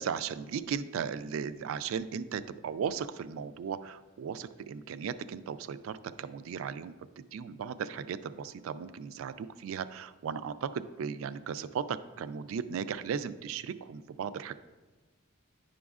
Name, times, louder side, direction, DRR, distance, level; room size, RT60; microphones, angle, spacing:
voice 1, 0.0-14.5, right 7 dB, 75° right, 13 dB, 0.3 m, -36 dB
10.0 x 5.1 x 2.4 m, 1.2 s
head